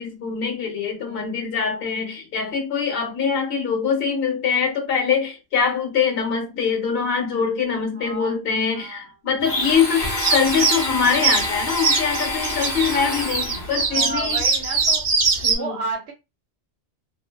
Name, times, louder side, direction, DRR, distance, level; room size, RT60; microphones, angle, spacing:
voice 1, 0.0-14.4 15.4-15.8, left 6 dB, 65° left, 1.1 m, -23 dB
voice 2, 8.0-8.4 8.7-9.1 13.8-15.0 15.5-16.1, right 3 dB, 80° right, 0.9 m, -32 dB
Domestic sounds home sounds, 9.4-13.8, left 1 dB, 30° left, 1.1 m, -28 dB
sound 1, 10.2-15.5, right 4 dB, 55° right, 0.7 m, -22 dB
2.6 x 2.1 x 2.2 m
omnidirectional pair, 1.1 m